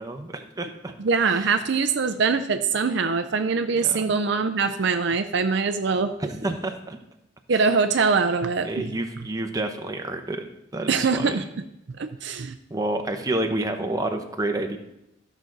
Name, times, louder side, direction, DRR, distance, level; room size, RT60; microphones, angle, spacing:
voice 1, 0.0-0.9 1.2-1.6 3.8-4.0 6.2-7.0 7.5-7.6 8.6-10.5 10.7-11.5 12.7-14.8, right 2 dB, 20° right, 5 dB, 0.8 m, -29 dB
voice 2, 1.0-6.1 7.5-8.9 10.9-11.4 12.0-12.6, right 5 dB, 60° right, 8 dB, 0.5 m, -23 dB
13.5 x 6.2 x 3.9 m, 0.86 s
head